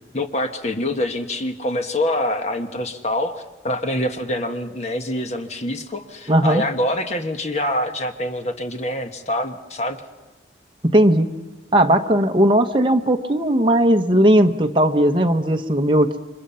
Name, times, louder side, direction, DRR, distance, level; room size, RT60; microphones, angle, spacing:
voice 1, 0.1-10.0, left 1 dB, 35° left, 6 dB, 1.4 m, -25 dB
voice 2, 6.3-6.6 10.9-11.3 11.7-16.2, right 1 dB, 25° right, 5 dB, 1.1 m, -17 dB
29.5 x 25.5 x 5.7 m, 1.1 s
head